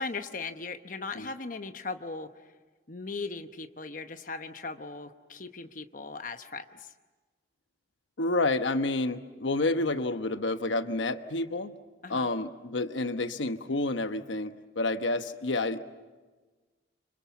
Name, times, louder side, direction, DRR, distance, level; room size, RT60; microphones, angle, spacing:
voice 1, 0.0-2.5 2.9-6.9 12.0-12.3, left 3 dB, 45° left, 8 dB, 1.0 m, -38 dB
voice 2, 8.2-11.8 12.1-15.8, left 2 dB, 90° left, 9 dB, 1.1 m, -29 dB
29.5 x 26.0 x 7.1 m, 1.3 s
head